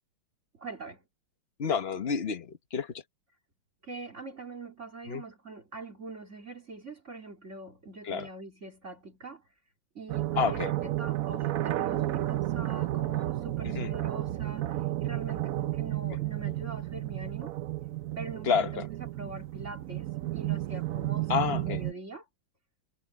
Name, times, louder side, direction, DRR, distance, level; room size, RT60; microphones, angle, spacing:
voice 1, 0.5-1.0 3.8-9.4 9.9-17.5 18.1-20.1 20.3-22.2, right 3 dB, 35° right, 3.1 m, -43 dB
voice 2, 1.6-2.9 5.1-5.2 8.1-8.3 10.4-10.7 13.6-13.9 18.5-18.9 21.3-21.8, left 6 dB, 35° left, 1.2 m, -29 dB
sound 1, 10.1-21.9, right 15 dB, 75° right, 0.7 m, -32 dB
omnidirectional pair, 2.2 m